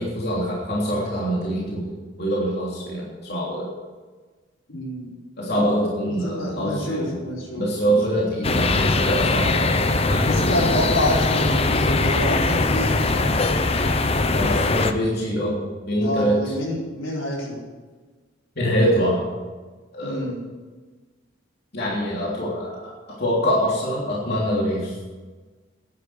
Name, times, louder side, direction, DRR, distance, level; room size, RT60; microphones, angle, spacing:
voice 1, 0.0-1.9 2.2-3.7 5.4-7.1 7.6-10.3 14.3-15.6 15.8-16.3 18.6-19.2 19.9-20.3 21.7-22.9 23.2-24.9, equal, 55° left, -5 dB, 3.2 m, -24 dB
voice 2, 4.7-5.2 6.0-8.2 10.2-13.3 16.0-17.6 20.0-20.4, left 1 dB, 85° left, -4 dB, 4.5 m, -27 dB
sound 1, 8.4-14.9, left 3 dB, 30° left, 0.7 m, -21 dB
11.0 x 9.8 x 8.0 m, 1.4 s
head